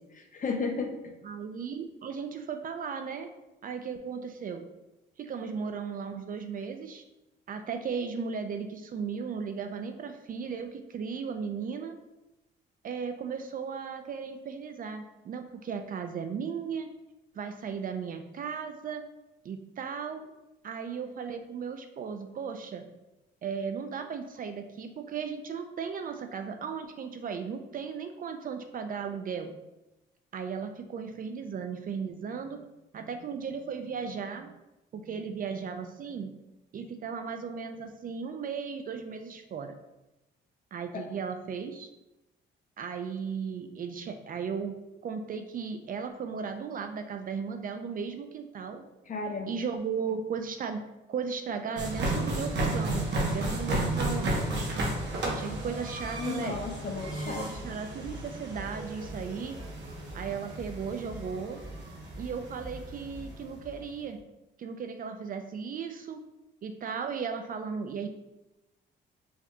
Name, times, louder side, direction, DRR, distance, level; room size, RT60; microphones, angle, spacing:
voice 1, 0.1-1.0 40.9-41.0 49.1-49.6 56.2-57.5, left 4 dB, 40° left, 3 dB, 0.7 m, -33 dB
voice 2, 1.2-3.3 3.6-4.6 5.2-7.0 7.5-12.0 12.8-16.9 17.3-19.0 19.4-20.3 20.6-22.9 23.4-29.5 30.3-32.7 32.9-34.6 34.9-36.3 36.7-39.7 40.7-41.9 42.8-44.7 45.0-48.8 49.5-50.8 51.1-54.5 55.2-56.6 57.2-59.6 60.1-61.6 62.2-64.2 64.6-66.2 66.6-68.1, right 6 dB, 45° right, 7 dB, 0.4 m, -36 dB
sound 1, 51.7-63.8, right 1 dB, 60° right, 0.9 m, -33 dB
4.7 x 2.7 x 2.2 m, 0.97 s
cardioid pair, 90°, 20 cm